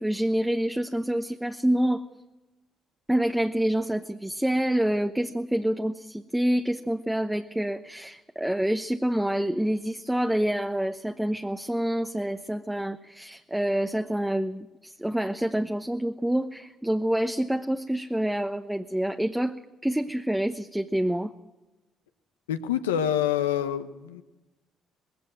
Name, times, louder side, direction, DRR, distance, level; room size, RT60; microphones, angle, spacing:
voice 1, 0.0-2.1 3.1-19.6 19.8-21.3, right 1 dB, 5° right, 6 dB, 1.0 m, -27 dB
voice 2, 22.5-24.2, left 10 dB, 90° left, 10 dB, 1.0 m, -26 dB
20.0 x 16.5 x 7.7 m, 1.1 s
hypercardioid pair, 50°, 0 cm